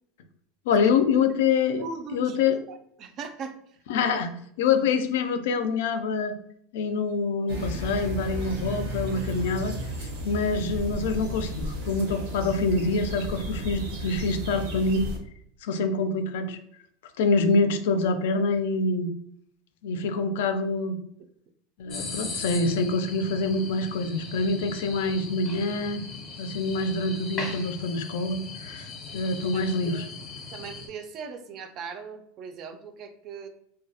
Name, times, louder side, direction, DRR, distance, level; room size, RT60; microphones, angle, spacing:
voice 1, 0.7-1.8 2.1-2.6 3.9-6.3 6.7-15.1 15.6-16.6 17.2-19.1 19.8-21.0 21.8-26.0 26.4-28.9 29.1-30.1, left 4 dB, 80° left, 9 dB, 0.3 m, -26 dB
voice 2, 1.8-2.4 2.7-3.8 29.5-30.1 30.5-33.5, right 5 dB, 40° right, 8 dB, 0.3 m, -39 dB
sound 1, 7.5-15.2, equal, 80° right, 0.7 m, -34 dB
sound 2, 21.9-30.9, left 4 dB, 30° left, 0.5 m, -38 dB
2.2 x 2.0 x 2.7 m, 0.69 s
supercardioid pair, 145°, 0 cm